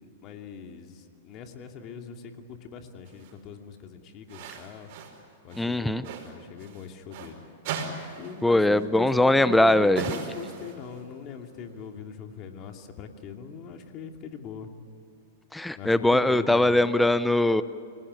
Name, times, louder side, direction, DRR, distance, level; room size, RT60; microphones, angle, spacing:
voice 1, 0.0-4.9 5.4-7.4 8.2-8.6 9.0-14.7 15.8-16.8, left 6 dB, 40° left, 4 dB, 2.6 m, -41 dB
sound 1, 3.1-3.3 4.3-5.2 5.5-7.3 7.6-8.4 8.7-8.9 10.0-11.1, right 5 dB, 55° right, 5.2 m, -38 dB
voice 2, 5.6-6.0 8.4-10.0 15.5-17.6, left 1 dB, 5° left, 14 dB, 0.7 m, -21 dB
27.0 x 18.5 x 9.9 m, 2.6 s
hypercardioid pair, 110°, 0 cm